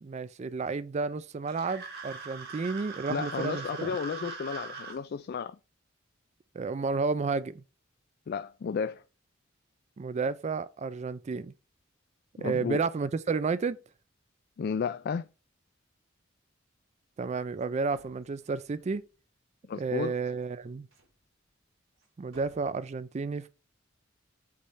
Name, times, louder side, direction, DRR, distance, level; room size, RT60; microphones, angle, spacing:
voice 1, 0.0-4.0 6.5-7.6 10.0-11.5 12.4-13.8 17.2-19.0 19.8-20.9 22.2-23.5, right 4 dB, 35° right, 0.3 m, -31 dB
sound 1, 1.5-5.0, right 5 dB, 50° right, 1.5 m, -41 dB
voice 2, 3.1-5.6 8.3-9.0 12.4-12.8 14.6-15.3 19.7-20.1, left 6 dB, 50° left, 0.3 m, -33 dB
sound 2, 17.6-17.7 17.9-19.1 20.1-21.2 22.0-22.1 22.3-22.7, right 1 dB, 80° right, 3.3 m, -59 dB
8.5 x 3.2 x 5.5 m
head